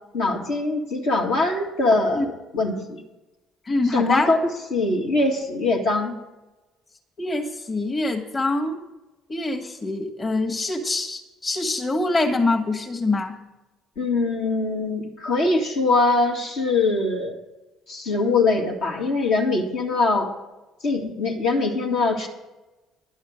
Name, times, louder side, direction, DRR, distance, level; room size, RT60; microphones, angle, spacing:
voice 1, 0.1-3.0 3.8-6.2 14.0-17.4 17.9-20.3 20.8-22.3, left 3 dB, 70° left, -1 dB, 2.0 m, -22 dB
voice 2, 3.7-4.3 7.2-8.8 9.3-13.3, left 2 dB, 30° left, 2 dB, 1.7 m, -24 dB
11.0 x 8.5 x 6.4 m, 1.1 s
hypercardioid pair, 55°, 0 cm